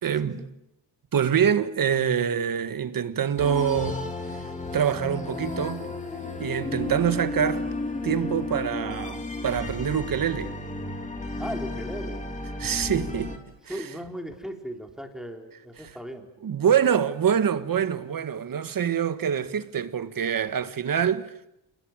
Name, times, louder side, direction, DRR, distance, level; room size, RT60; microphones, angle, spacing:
voice 1, 0.0-0.4 1.1-4.0 4.3-5.9 6.4-7.7 8.0-10.5 12.6-13.3 13.6-13.8 16.4-21.3, right 8 dB, 50° right, 1.6 m, -25 dB
sound 1, 3.4-13.4, left 2 dB, 15° left, 3.2 m, -33 dB
voice 2, 11.4-12.2 13.7-16.3, equal, ahead, 3.7 m, -37 dB
29.0 x 20.0 x 9.0 m
wide cardioid pair, 135°, 44 cm